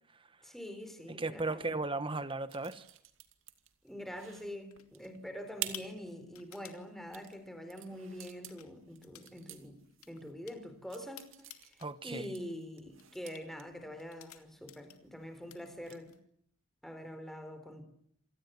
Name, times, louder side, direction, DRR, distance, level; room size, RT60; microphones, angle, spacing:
voice 1, 0.4-1.8 3.8-16.1 16.8-17.8, equal, ahead, 4.2 m, -45 dB
voice 2, 1.1-2.8 11.8-12.3, right 3 dB, 25° right, 1.1 m, -36 dB
sound 1, 2.2-16.2, right 12 dB, 65° right, 2.5 m, -50 dB
sound 2, 3.9-4.3 4.7-5.2 5.5-6.8 7.8-7.9 8.3-8.7 9.0-9.3 9.6-11.9 12.3-12.6 13.0-13.4 14.0-15.1 15.4-16.2, left 11 dB, 85° left, 2.7 m, -54 dB
27.5 x 19.0 x 9.5 m
head